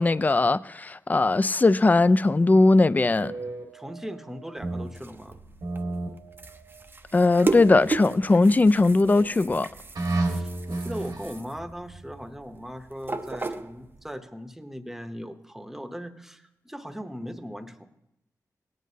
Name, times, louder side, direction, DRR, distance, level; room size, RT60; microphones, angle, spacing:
voice 1, 0.0-3.3 7.1-9.7, left 3 dB, 25° left, 0.3 m, -19 dB
sound 1, 3.2-4.9 5.2-6.8 7.5-8.4 9.0-9.4 9.9-11.4, right 2 dB, 85° right, 1.4 m, -33 dB
voice 2, 3.7-5.4 10.1-17.9, equal, 5° right, 0.8 m, -39 dB
sound 2, 4.6-14.2, right 3 dB, 35° right, 0.5 m, -35 dB
17.5 x 9.3 x 2.7 m
cardioid pair, 70°, 6 cm